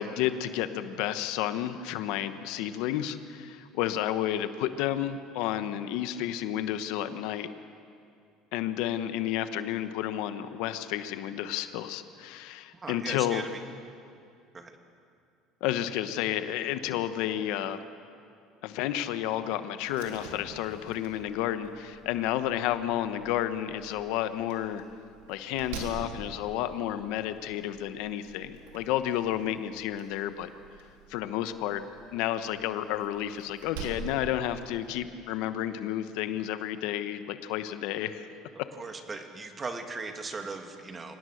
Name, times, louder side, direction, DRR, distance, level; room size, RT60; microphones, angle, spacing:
voice 1, 0.0-7.5 8.5-13.4 15.6-17.8 18.6-24.8 25.3-30.5 31.1-31.8 32.1-38.3, left 11 dB, 75° left, 11 dB, 1.1 m, -31 dB
voice 2, 12.7-13.6 14.5-14.7 38.8-41.2, right 3 dB, 25° right, 5 dB, 2.2 m, -38 dB
Slam, 19.8-34.9, right 5 dB, 90° right, 3.3 m, -47 dB
25.5 x 18.0 x 6.5 m, 2.4 s
supercardioid pair, 100°, 0 cm